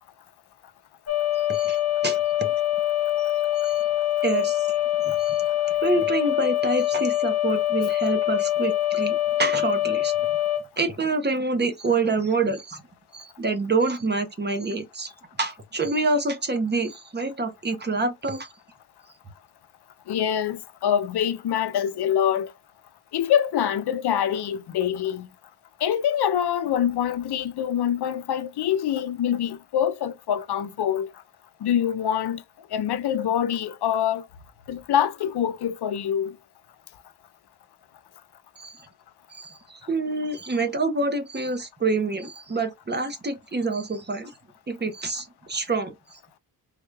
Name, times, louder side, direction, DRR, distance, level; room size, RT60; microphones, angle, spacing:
sound 1, 1.1-10.6, left 13 dB, 40° left, 0.6 m, -24 dB
voice 1, 1.5-2.6 3.6-3.8 4.2-4.7 5.2-5.5 5.8-10.1 10.8-12.8 13.1-15.1 15.4-18.5 38.6-38.8 39.3-44.3 44.7-46.2, right 3 dB, 25° right, 0.6 m, -27 dB
voice 2, 20.1-22.5 23.1-25.3 25.8-31.1 31.6-32.4 32.7-34.2 34.7-36.4, left 9 dB, 90° left, 0.5 m, -25 dB
3.7 x 2.2 x 3.1 m
wide cardioid pair, 170°, 38 cm